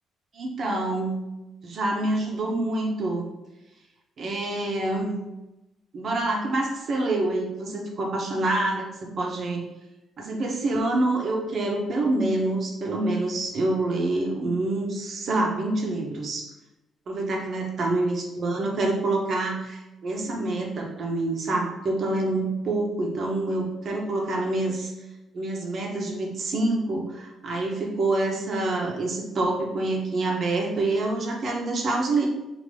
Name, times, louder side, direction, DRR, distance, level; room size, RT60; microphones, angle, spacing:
voice 1, 0.3-1.2 1.6-3.3 4.2-5.2 5.9-9.6 10.2-16.5 17.1-24.9 25.3-32.3, right 2 dB, 55° right, 0 dB, 1.0 m, -26 dB
5.4 x 2.9 x 3.3 m, 1.0 s
cardioid pair, 90°, 0 cm